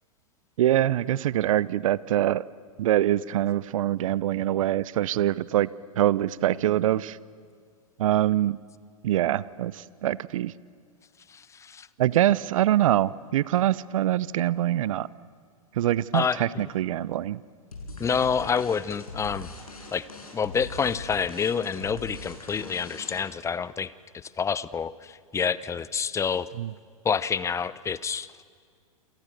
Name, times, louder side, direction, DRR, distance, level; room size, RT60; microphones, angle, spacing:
voice 1, 0.6-2.4 2.8-5.7 5.9-7.2 8.0-8.6 9.0-10.5 12.0-15.1 15.8-17.4 26.6-26.7, right 13 dB, 65° right, 20 dB, 0.8 m, -24 dB
voice 2, 11.3-11.9 16.1-16.6 18.0-19.5 19.9-20.1 20.3-26.5 27.0-28.3, left 6 dB, 15° left, 18 dB, 0.8 m, -28 dB
sound 1, 17.7-23.5, left 2 dB, 90° left, 6.5 m, -41 dB
28.5 x 27.5 x 6.8 m, 2.1 s
hypercardioid pair, 105°, 18 cm